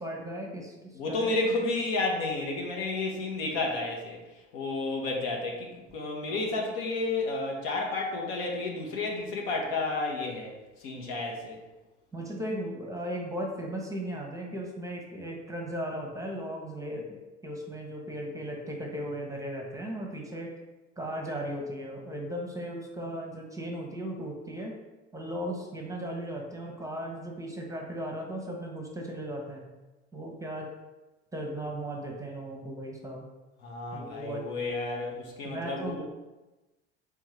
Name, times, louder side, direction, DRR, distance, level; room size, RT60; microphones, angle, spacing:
voice 1, 0.0-1.3 12.1-20.5 21.0-24.7 25.1-29.7 30.1-30.7 31.3-33.3 33.9-34.5 35.4-36.0, equal, 10° right, 0 dB, 0.8 m, -36 dB
voice 2, 0.9-4.2 4.5-10.5 10.8-11.6 33.6-36.0, left 3 dB, 70° left, 0 dB, 0.9 m, -31 dB
3.5 x 3.4 x 3.2 m, 1.1 s
hypercardioid pair, 70°, 33 cm